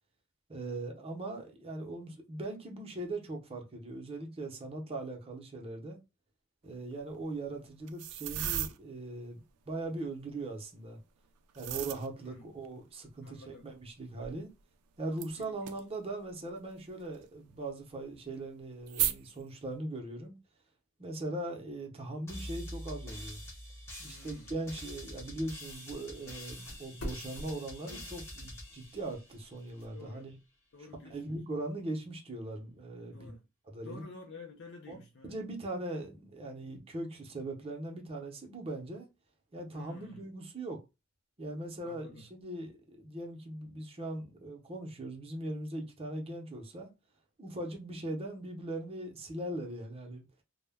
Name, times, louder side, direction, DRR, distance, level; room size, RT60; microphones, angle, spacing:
voice 1, 0.5-6.0 6.6-9.4 9.7-11.0 11.5-14.5 15.0-20.3 21.0-23.4 24.0-30.4 31.1-33.3 33.6-34.0 34.9-35.0 35.3-39.1 39.5-40.8 41.4-46.9 47.4-50.2, right 2 dB, 25° right, 0.6 m, -40 dB
sound 1, 7.9-8.8 11.5-12.1 12.6-12.7 14.1-14.4 15.2-15.8 17.1-17.2 18.9-19.4, right 11 dB, 85° right, 0.3 m, -34 dB
voice 2, 12.3-12.6 13.2-13.7 15.4-15.8 24.0-24.5 29.9-30.3 30.7-31.4 33.1-33.4 33.8-35.3 39.7-40.2 41.8-42.3, left 3 dB, 55° left, 0.5 m, -51 dB
sound 2, 22.3-29.8, equal, 15° left, 0.7 m, -46 dB
sound 3, 25.5-27.6 28.4-30.2, equal, 70° left, 0.9 m, -47 dB
2.1 x 2.1 x 3.3 m
head